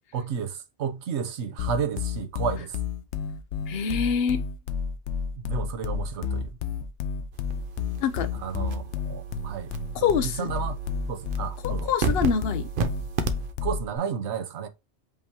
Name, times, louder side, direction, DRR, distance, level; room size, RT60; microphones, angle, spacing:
voice 1, 0.1-2.8 5.3-6.5 8.4-9.7 10.0-10.8 11.1-11.9 13.6-14.7, right 7 dB, 85° right, 1.0 m, -32 dB
sound 1, 1.6-14.0, left 6 dB, 90° left, 1.0 m, -31 dB
voice 2, 3.7-4.4 8.0-8.3 9.9-10.5 11.6-12.7, left 7 dB, 65° left, 0.9 m, -25 dB
sound 2, 7.3-13.5, right 5 dB, 55° right, 0.8 m, -33 dB
5.3 x 2.8 x 3.4 m
omnidirectional pair, 1.1 m